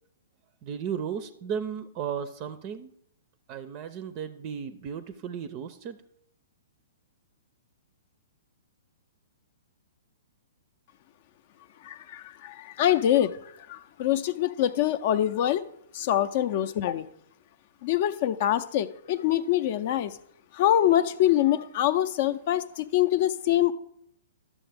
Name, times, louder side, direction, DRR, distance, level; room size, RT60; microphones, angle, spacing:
voice 1, 0.6-2.9 3.5-6.0, right 7 dB, 35° right, 12 dB, 0.4 m, -35 dB
voice 2, 11.8-15.6 15.9-17.1 17.8-20.1 20.5-23.7, left 12 dB, 50° left, 12 dB, 0.5 m, -25 dB
11.5 x 7.2 x 3.4 m, 0.73 s
hypercardioid pair, 120°, 0 cm